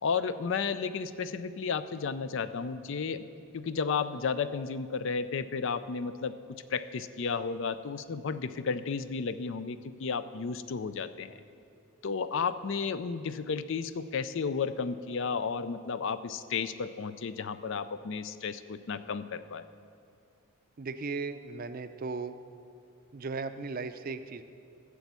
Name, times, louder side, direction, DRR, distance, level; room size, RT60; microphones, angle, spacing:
voice 1, 0.0-3.3 3.5-11.3 12.0-19.7, left 5 dB, 60° left, 13 dB, 0.4 m, -33 dB
voice 2, 20.8-22.4 23.1-24.4, right 4 dB, 40° right, 10 dB, 0.5 m, -36 dB
11.5 x 7.0 x 8.1 m, 2.5 s
head